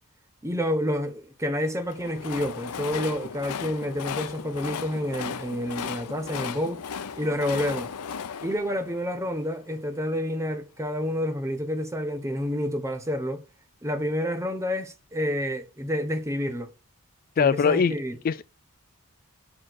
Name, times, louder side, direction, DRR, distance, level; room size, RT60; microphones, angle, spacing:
voice 1, 0.4-6.8 7.2-7.9 8.4-13.4 13.8-16.7 17.4-18.2, equal, 15° right, 1.1 m, -29 dB
Train, 1.7-9.8, left 6 dB, 90° left, 0.6 m, -36 dB
voice 2, 17.4-17.9 18.2-18.4, left 6 dB, 40° left, 0.3 m, -21 dB
6.0 x 4.7 x 6.2 m
head